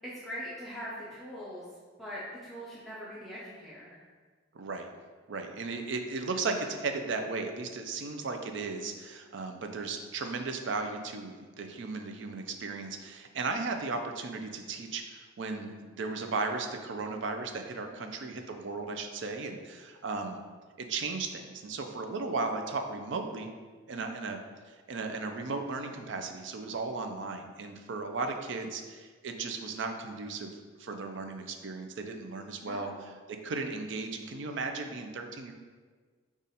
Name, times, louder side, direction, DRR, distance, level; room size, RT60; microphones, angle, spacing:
voice 1, 0.0-1.7 2.0-4.0 17.8-18.1 23.9-24.2 32.6-33.0, equal, ahead, -9 dB, 0.6 m, -42 dB
voice 2, 4.5-4.9 5.3-20.4 20.8-23.5 23.9-24.4 24.7-30.5 30.8-35.5, right 3 dB, 60° right, 5 dB, 0.4 m, -36 dB
5.2 x 2.4 x 4.1 m, 1.5 s
head